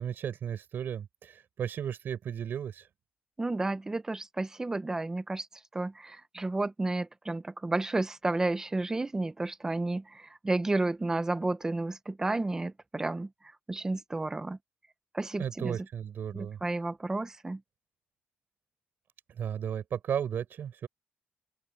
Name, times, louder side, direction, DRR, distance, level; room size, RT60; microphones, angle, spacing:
voice 1, 0.0-2.9 15.4-16.6 19.4-20.9, right 8 dB, 60° right, 6.5 m, -34 dB
voice 2, 3.4-5.5 5.7-13.3 13.7-14.6 15.1-15.8 16.3-17.6, right 2 dB, 15° right, 1.1 m, -31 dB
wide cardioid pair, 170°, 4 cm